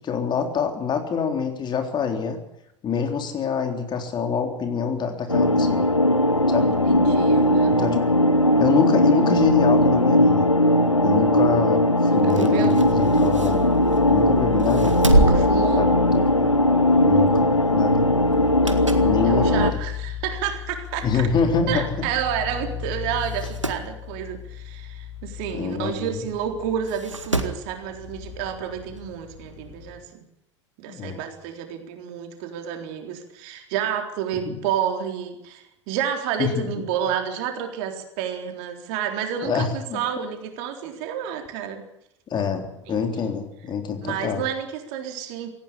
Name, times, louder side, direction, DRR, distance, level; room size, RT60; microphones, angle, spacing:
voice 1, 0.0-2.4 2.8-5.9 6.5-6.7 7.7-8.2 8.6-10.5 11.0-13.7 14.1-15.1 15.8-16.5 17.0-18.1 19.0-19.8 21.0-21.8 25.5-26.2 30.9-31.2 34.5-34.6 36.4-36.6 39.4-40.0 42.3-44.4, left 6 dB, 30° left, 5 dB, 3.7 m, -26 dB
sound 1, 5.3-19.7, left 1 dB, 90° left, 1.2 m, -19 dB
voice 2, 6.6-7.8 12.1-12.8 15.1-15.9 19.2-21.3 21.7-30.2 30.8-41.8 42.9-43.4 44.0-45.5, right 8 dB, 50° right, 5 dB, 3.9 m, -30 dB
sound 2, 12.2-14.1 14.6-16.5 16.8-17.1 18.3-19.2 19.6-19.7 20.6-20.7 21.0-21.1 21.2-21.3 22.2-22.4 22.7-22.8 23.2-23.9 25.7-25.8 26.8-27.7 29.0-29.1, right 2 dB, 90° right, 1.9 m, -26 dB
sound 3, 12.8-30.0, left 8 dB, 60° left, 6.1 m, -35 dB
18.5 x 16.5 x 9.9 m, 0.78 s
figure-of-eight pair, 80°, 15 cm